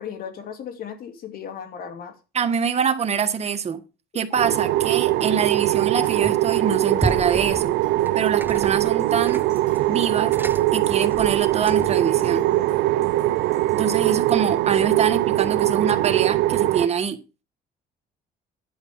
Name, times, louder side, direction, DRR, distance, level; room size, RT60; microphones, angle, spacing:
voice 1, 0.0-2.2 14.0-14.2, left 8 dB, 60° left, 2.8 m, -36 dB
voice 2, 2.3-3.8 4.1-7.8 8.1-9.4 9.9-10.4 10.7-12.5 13.7-17.2, right 6 dB, 40° right, 1.6 m, -25 dB
sound 1, 4.1-14.8, left 4 dB, 45° left, 4.6 m, -52 dB
sound 2, 4.4-16.9, right 16 dB, 90° right, 0.7 m, -21 dB
sound 3, 6.0-6.6 7.0-12.1, right 2 dB, 10° right, 0.6 m, -33 dB
11.0 x 5.2 x 7.5 m
cardioid pair, 110°, 17 cm